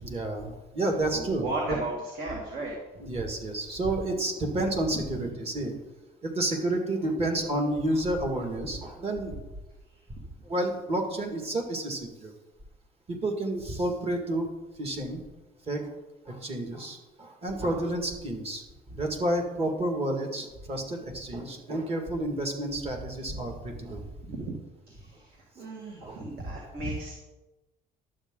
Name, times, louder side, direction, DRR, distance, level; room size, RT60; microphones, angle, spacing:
voice 1, 0.0-1.5 3.0-5.7 6.2-9.4 10.4-12.3 13.1-14.5 14.8-15.2 15.7-15.9 16.3-24.0 25.6-25.7 26.0-26.3 26.8-26.9, right 1 dB, 35° right, 3 dB, 1.9 m, -30 dB
voice 2, 1.1-2.7 24.3-24.6 24.9-27.1, right 2 dB, 65° right, -1 dB, 2.0 m, -35 dB
11.5 x 7.9 x 3.8 m, 1.1 s
cardioid pair, 110°, 17 cm